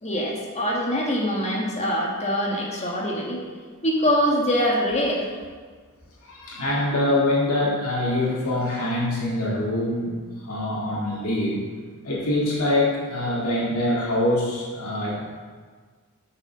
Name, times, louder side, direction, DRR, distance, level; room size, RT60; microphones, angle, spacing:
voice 1, 0.0-3.4 3.8-5.3, equal, 30° left, -2 dB, 1.5 m, -24 dB
voice 2, 6.2-10.1 10.4-11.6 12.0-15.3, left 1 dB, 75° left, -6 dB, 2.2 m, -24 dB
7.4 x 5.8 x 6.0 m, 1.5 s
head